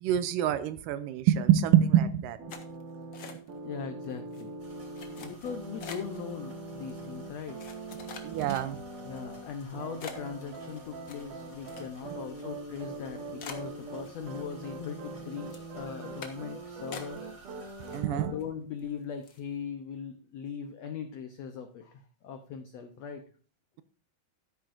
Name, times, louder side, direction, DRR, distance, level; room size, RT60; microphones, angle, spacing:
voice 1, 0.0-2.4 5.1-5.3 8.2-8.8 17.9-18.3, right 10 dB, 80° right, 13 dB, 2.1 m, -25 dB
sound 1, 2.4-9.5 9.7-18.4, right 2 dB, 65° right, 3.2 m, -42 dB
sound 2, 2.5-3.7 4.0-4.4 4.9-6.2 6.9-7.0 7.6-9.0 9.5-9.6 10.0-12.2 12.5-12.6 13.0-13.1 13.4-14.5 14.8-15.2 15.5-15.7 16.2-16.5 16.9-17.5 17.8-18.4 18.8-18.9 19.2-19.5, left 6 dB, 60° left, 1.3 m, -45 dB
voice 2, 3.6-4.5 4.9-7.6 9.0-17.2 18.1-23.2, left 7 dB, 85° left, 7 dB, 1.5 m, -40 dB
sound 3, 4.6-18.0, right 2 dB, 20° right, 4.5 m, -54 dB
12.5 x 10.0 x 2.6 m, 0.41 s
omnidirectional pair, 4.1 m